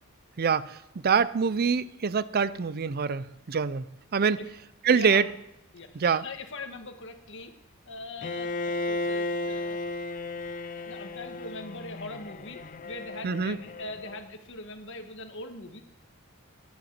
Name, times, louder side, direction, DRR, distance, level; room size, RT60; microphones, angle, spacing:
voice 1, 0.4-0.8 1.0-3.8 4.1-4.4 4.8-5.2 5.9-6.2 13.2-13.6, right 6 dB, 45° right, 17 dB, 0.5 m, -25 dB
voice 2, 4.9-5.2 5.7-7.5 7.9-9.8 10.7-15.8, left 2 dB, 60° left, 6 dB, 1.4 m, -41 dB
Bowed string instrument, 8.2-14.2, left 2 dB, 40° left, 0.5 m, -34 dB
10.5 x 7.9 x 7.3 m, 0.86 s
head